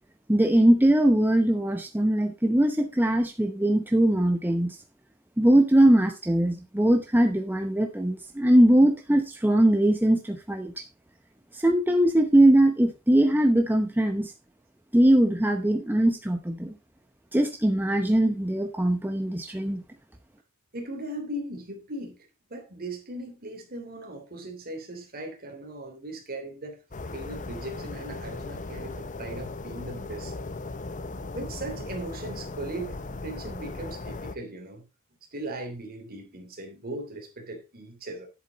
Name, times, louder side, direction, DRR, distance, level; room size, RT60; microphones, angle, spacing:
voice 1, 0.3-4.8 5.4-10.8 11.5-14.3 14.9-16.7 17.3-19.8, right 1 dB, 10° right, 0.9 m, -21 dB
voice 2, 20.7-26.8 27.1-30.3 30.7-30.8 31.3-33.0 33.2-34.8 35.3-38.3, right 1 dB, 45° right, 3.2 m, -38 dB
sound 1, 26.9-34.3, left 3 dB, 35° left, 0.8 m, -37 dB
10.5 x 8.2 x 4.1 m
head